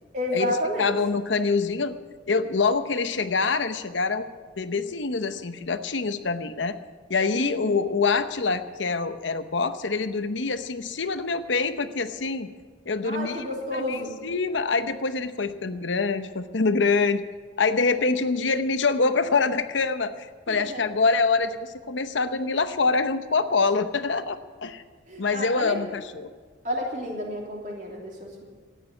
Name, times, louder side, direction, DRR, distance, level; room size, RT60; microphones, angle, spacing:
voice 1, 0.1-0.9 7.3-7.8 13.0-14.1 20.5-20.8 25.1-25.8 26.6-28.4, equal, 40° right, -1 dB, 3.2 m, -31 dB
voice 2, 0.8-2.0 2.3-4.3 4.6-6.8 7.1-12.5 12.9-13.4 13.7-17.2 17.6-24.8 25.2-26.3, left 4 dB, 75° left, 11 dB, 0.8 m, -25 dB
13.5 x 9.3 x 9.5 m, 1.5 s
head